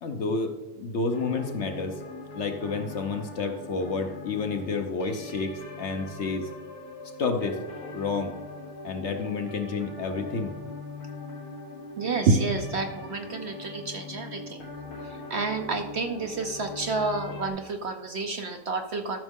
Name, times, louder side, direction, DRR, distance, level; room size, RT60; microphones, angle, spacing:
voice 1, 0.0-2.0 2.3-6.5 7.2-7.6 7.9-8.3 8.8-10.5, left 4 dB, 55° left, 6 dB, 1.0 m, -30 dB
sound 1, 1.1-17.5, left 2 dB, 80° left, 2.0 m, -41 dB
voice 2, 12.0-14.6 15.0-19.2, right 3 dB, 55° right, 5 dB, 0.8 m, -29 dB
13.5 x 6.2 x 3.6 m, 1.1 s
omnidirectional pair, 1.6 m